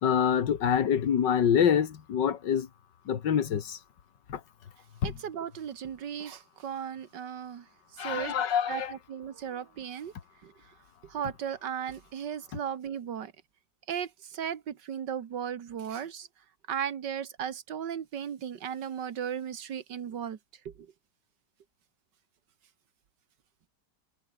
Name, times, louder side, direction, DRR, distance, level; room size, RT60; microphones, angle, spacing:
voice 1, 0.0-2.7 3.1-3.8 4.3-4.4 5.0-5.1 8.0-8.9, left 8 dB, 80° left, 2.2 m, -26 dB
voice 2, 5.0-7.7 7.9-8.3 8.7-10.1 10.4-10.5 11.0-13.3 13.9-16.3 16.7-20.4 20.7-20.9, right 8 dB, 75° right, 2.1 m, -36 dB
omnidirectional pair, 1.9 m